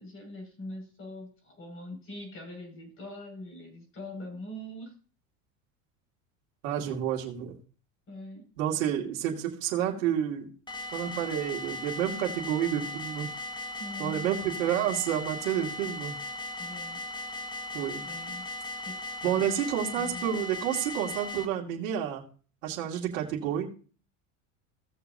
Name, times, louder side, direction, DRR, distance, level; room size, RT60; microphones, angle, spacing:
voice 1, 0.0-4.9 8.1-8.4 13.8-14.3 16.6-17.0 18.0-18.5 18.8-19.5 20.0-20.3, left 1 dB, 35° left, 2 dB, 5.6 m, -42 dB
voice 2, 6.6-7.5 8.6-10.5 10.9-13.3 14.0-16.1 17.7-18.0 19.2-22.2 22.6-23.7, right 10 dB, 80° right, -1 dB, 2.2 m, -29 dB
sound 1, 10.7-21.5, left 2 dB, 10° left, 1.0 m, -38 dB
16.5 x 7.1 x 2.7 m, 0.38 s
supercardioid pair, 115°, 39 cm